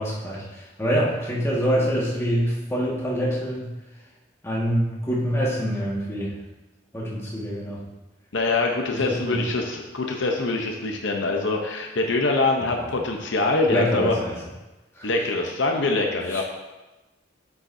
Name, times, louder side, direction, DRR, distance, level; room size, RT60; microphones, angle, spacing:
voice 1, 0.0-4.0 4.4-6.4 6.9-7.8 8.9-9.4 12.6-12.9 13.7-14.3 14.9-15.1 16.3-16.4, equal, 15° left, -6 dB, 1.7 m, -26 dB
voice 2, 8.3-14.2 15.0-16.4, left 3 dB, 70° left, 2 dB, 0.8 m, -24 dB
8.3 x 7.3 x 2.7 m, 1.1 s
head